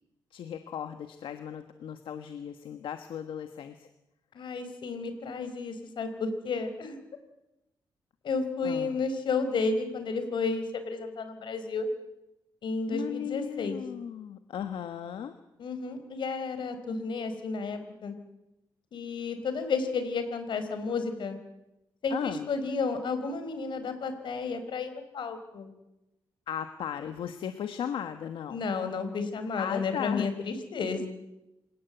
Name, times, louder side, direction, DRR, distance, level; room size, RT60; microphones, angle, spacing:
voice 1, 0.3-3.9 8.6-9.0 12.9-15.3 22.1-22.4 26.5-28.6 29.6-30.3, left 9 dB, 85° left, 8 dB, 1.5 m, -36 dB
voice 2, 4.3-7.0 8.2-11.9 12.6-13.8 15.6-18.1 18.9-21.4 22.0-25.7 28.5-31.1, left 4 dB, 65° left, 9 dB, 4.5 m, -32 dB
27.5 x 17.5 x 8.1 m, 0.92 s
cardioid pair, 110°, 9 cm